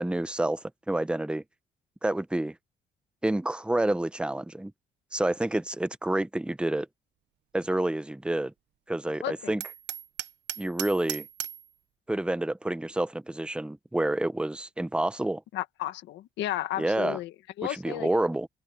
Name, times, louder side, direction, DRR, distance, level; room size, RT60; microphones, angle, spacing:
voice 1, 0.0-1.4 2.0-2.5 3.2-4.7 5.1-6.9 7.5-8.5 8.9-9.6 10.6-11.3 12.1-15.4 16.8-17.2 17.7-18.5, right 1 dB, 5° right, 0.8 m, -28 dB
voice 2, 9.2-9.5 15.5-18.1, left 14 dB, 90° left, 1.4 m, -33 dB
Hammer, 9.6-11.7, right 13 dB, 85° right, 0.9 m, -37 dB
open air
cardioid pair, 75°, 18 cm